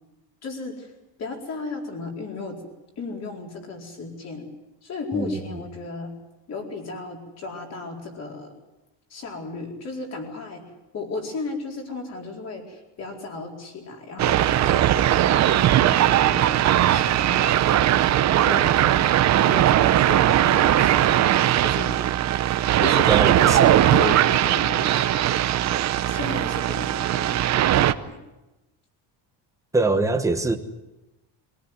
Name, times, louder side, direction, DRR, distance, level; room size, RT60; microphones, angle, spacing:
voice 1, 0.4-0.9 1.2-2.7 3.0-4.5 4.8-6.1 6.5-8.5 9.1-10.6 10.9-18.1 18.4-19.0 19.4-22.0 22.8-23.6 23.9-25.5 26.1-27.5 28.0-28.2 29.8-29.9, left 3 dB, 35° left, 4.6 m, -35 dB
voice 2, 5.1-5.6 23.1-23.8 29.7-30.6, right 3 dB, 5° right, 1.2 m, -24 dB
sound 1, 14.2-27.9, right 12 dB, 40° right, 0.8 m, -19 dB
23.5 x 17.5 x 9.7 m
cardioid pair, 180°, 44 cm